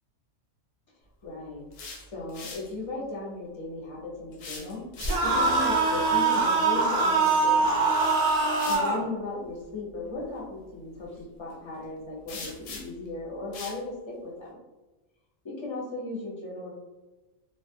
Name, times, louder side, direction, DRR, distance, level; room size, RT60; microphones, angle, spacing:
voice 1, 1.2-1.7 2.1-4.8 5.2-7.8 8.6-14.6 15.4-16.7, left 2 dB, 30° left, -5 dB, 0.6 m, -36 dB
sound 1, 1.5-2.7 4.3-5.5 7.6-7.7 8.5-8.9 12.3-13.1 13.5-13.8, left 4 dB, 65° left, 0.7 m, -41 dB
sound 2, 5.0-9.0, right 3 dB, 45° right, 0.5 m, -23 dB
2.3 x 2.2 x 2.6 m, 1.1 s
omnidirectional pair, 1.2 m